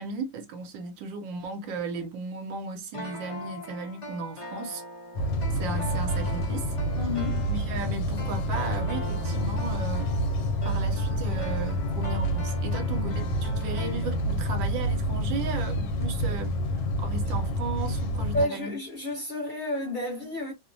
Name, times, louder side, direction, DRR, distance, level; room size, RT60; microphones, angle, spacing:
voice 1, 0.0-4.8 5.6-6.7 7.5-10.2 10.6-16.6 17.0-18.8, right 3 dB, 80° right, 1.3 m, -35 dB
sound 1, 2.9-14.6 14.8-14.9, equal, 60° left, 0.3 m, -41 dB
sound 2, 5.2-18.4, equal, 80° left, 1.3 m, -28 dB
voice 2, 7.0-7.5 18.3-20.5, left 1 dB, 35° left, 0.9 m, -30 dB
3.1 x 2.1 x 2.5 m
omnidirectional pair, 2.0 m